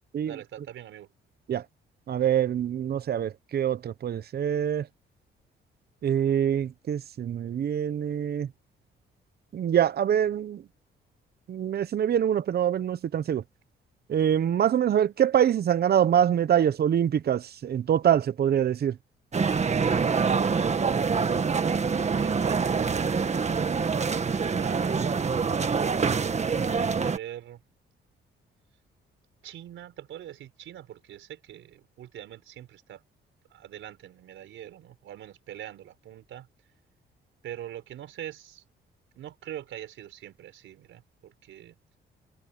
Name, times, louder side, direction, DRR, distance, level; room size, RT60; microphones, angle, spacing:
voice 1, 0.3-1.1 22.2-25.1 26.3-27.6 29.4-33.0 33.5-36.5 37.4-38.6 39.2-41.8, right 11 dB, 75° right, 4.8 m, -43 dB
voice 2, 2.1-4.9 6.0-8.5 9.5-10.6 11.5-13.4 14.1-19.0, right 9 dB, 55° right, 0.9 m, -25 dB
sound 1, 19.3-27.2, right 5 dB, 35° right, 1.7 m, -25 dB
cardioid pair, 90°, 20 cm